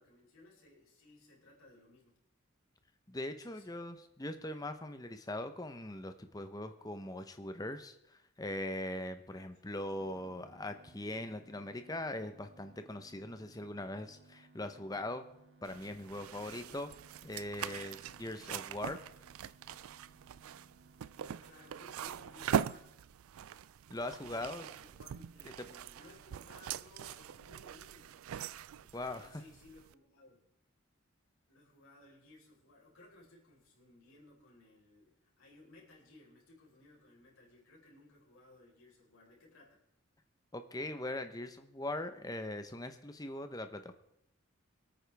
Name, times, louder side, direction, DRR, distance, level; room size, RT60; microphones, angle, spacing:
voice 1, 0.0-2.2 3.4-3.8 9.3-10.5 21.4-22.9 24.2-28.2 29.1-30.5 31.5-39.8, left 2 dB, 85° left, -3 dB, 4.4 m, -60 dB
voice 2, 3.1-15.2 15.6-16.9 17.2-19.0 23.9-24.6 28.9-29.4 40.5-43.9, left 1 dB, 15° left, 8 dB, 0.8 m, -41 dB
sound 1, 10.0-22.9, right 3 dB, 75° right, 1.2 m, -63 dB
sound 2, 15.6-29.9, right 8 dB, 90° right, 0.4 m, -42 dB
25.0 x 8.9 x 3.5 m, 0.81 s
head